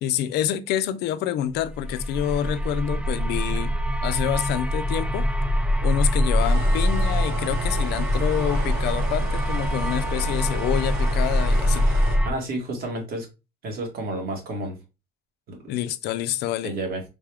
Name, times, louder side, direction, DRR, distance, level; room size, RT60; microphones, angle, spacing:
voice 1, 0.0-3.7 4.0-5.2 5.8-11.9 15.7-16.7, left 11 dB, 75° left, 0.4 m, -27 dB
sound 1, 1.6-12.3, equal, 5° right, 0.3 m, -24 dB
sound 2, 6.4-12.2, right 1 dB, 80° right, 1.4 m, -35 dB
voice 2, 12.2-13.3 13.6-14.8 15.5-15.6 16.6-17.0, right 2 dB, 60° right, 1.4 m, -30 dB
3.8 x 2.3 x 3.4 m
cardioid pair, 110°, 17 cm